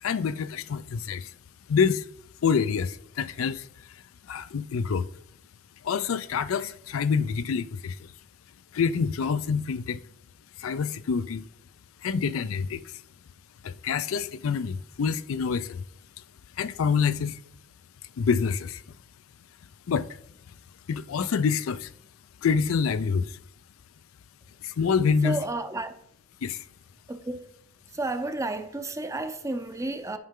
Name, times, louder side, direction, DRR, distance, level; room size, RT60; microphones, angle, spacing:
voice 1, 0.0-1.3 1.7-2.1 2.4-5.1 5.8-8.1 8.7-10.0 10.6-11.5 12.0-13.0 13.6-15.8 16.6-17.4 18.2-18.8 19.9-20.1 20.9-21.9 22.4-23.4 24.6-25.4 26.4-26.6, left 6 dB, 80° left, 0.4 m, -27 dB
voice 2, 25.2-25.9 27.1-27.5 27.9-30.2, right 2 dB, 15° right, 0.5 m, -31 dB
10.5 x 5.6 x 3.7 m
head